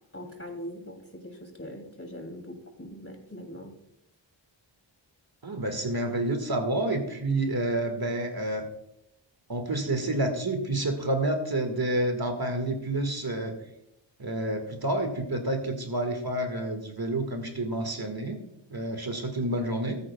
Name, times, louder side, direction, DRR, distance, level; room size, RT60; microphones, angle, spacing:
voice 1, 0.1-3.7, equal, 30° left, 3 dB, 2.7 m, -41 dB
voice 2, 5.4-8.7 9.5-13.6 14.2-18.4 18.7-20.0, right 1 dB, 50° right, 5 dB, 1.8 m, -29 dB
19.0 x 8.8 x 2.3 m, 0.80 s
wide cardioid pair, 45°, 47 cm